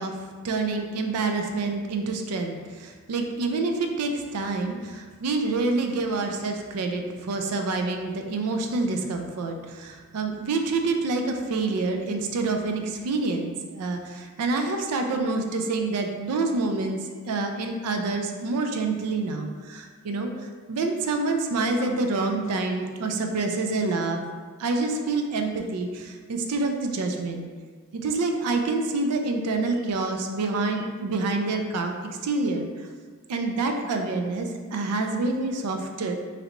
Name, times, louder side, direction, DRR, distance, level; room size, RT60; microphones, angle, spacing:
voice 1, 0.4-17.0 17.3-24.2 24.6-27.5 27.9-32.0 32.2-32.9 33.3-36.2, right 3 dB, 80° right, 4 dB, 0.4 m, -27 dB
3.2 x 2.9 x 2.5 m, 1.5 s
head